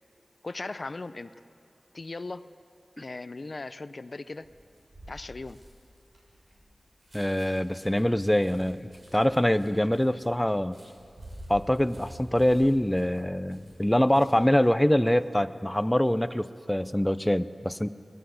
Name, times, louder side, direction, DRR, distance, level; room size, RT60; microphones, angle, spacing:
voice 1, 0.4-1.3 1.9-2.4 3.0-4.5 5.1-5.6, left 3 dB, 60° left, 13 dB, 0.6 m, -38 dB
sound 1, 4.4-14.6 15.0-15.3, equal, 60° right, 7.0 m, -49 dB
voice 2, 7.1-10.8 11.5-17.9, left 1 dB, 10° left, 12 dB, 0.7 m, -24 dB
24.5 x 18.0 x 8.0 m, 2.7 s
wide cardioid pair, 55°, 0 cm